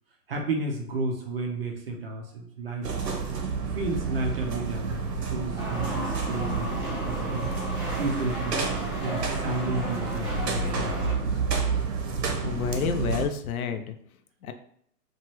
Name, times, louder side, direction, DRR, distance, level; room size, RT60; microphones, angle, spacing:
voice 1, 0.3-2.9 3.6-6.7 7.0-7.5 8.0-11.6, right 2 dB, 40° right, 2 dB, 0.4 m, -32 dB
sound 1, 2.8-13.3, right 5 dB, 90° right, 0.8 m, -30 dB
sound 2, 5.6-11.1, right 1 dB, 10° right, 0.9 m, -34 dB
voice 2, 12.4-13.9 14.4-14.5, left 6 dB, 65° left, 8 dB, 0.5 m, -29 dB
2.9 x 2.3 x 2.9 m, 0.65 s
hypercardioid pair, 135°, 48 cm